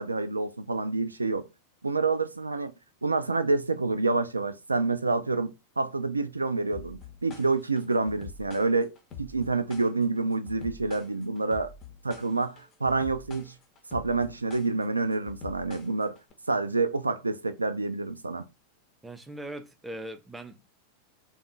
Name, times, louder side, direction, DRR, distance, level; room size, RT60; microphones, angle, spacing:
voice 1, 0.0-1.5 1.8-2.7 3.0-8.9 9.2-11.7 12.0-13.5 13.9-16.2 16.5-18.4, right 3 dB, 80° right, 0.4 m, -28 dB
sound 1, 6.7-16.3, left 6 dB, 30° left, 0.8 m, -45 dB
voice 2, 19.0-20.7, right 1 dB, 10° right, 0.5 m, -40 dB
3.4 x 2.3 x 3.8 m
figure-of-eight pair, 90°, 0 cm